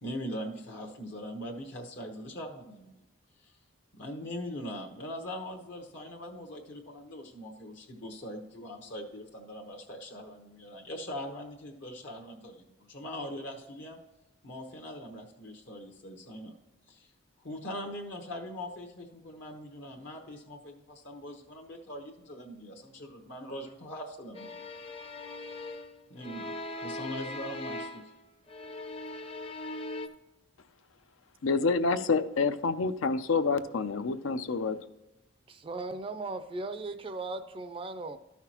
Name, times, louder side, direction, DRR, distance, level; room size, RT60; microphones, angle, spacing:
voice 1, 0.0-3.0 3.4-3.5 3.9-14.0 14.4-16.5 16.9-17.1 17.4-24.6 26.1-28.1, equal, 65° left, 1.1 m, -41 dB
sound 1, 24.3-28.2 28.5-30.1, left 2 dB, 30° left, 0.6 m, -40 dB
voice 2, 31.4-34.8, left 4 dB, 80° left, 0.6 m, -28 dB
voice 3, 35.5-38.2, right 3 dB, 25° right, 0.4 m, -37 dB
13.5 x 5.8 x 2.9 m
head